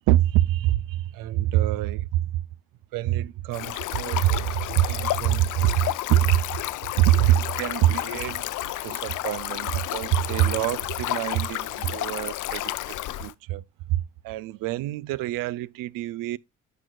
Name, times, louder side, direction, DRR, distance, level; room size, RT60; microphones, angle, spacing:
voice 1, 0.1-2.4 2.9-6.4 7.0-8.4 8.8-13.6 13.9-16.4, right 14 dB, 80° right, 0.5 m, -25 dB
Stream, 3.5-13.3, left 15 dB, 65° left, 0.6 m, -31 dB
12.5 x 4.8 x 2.2 m
supercardioid pair, 75°, 33 cm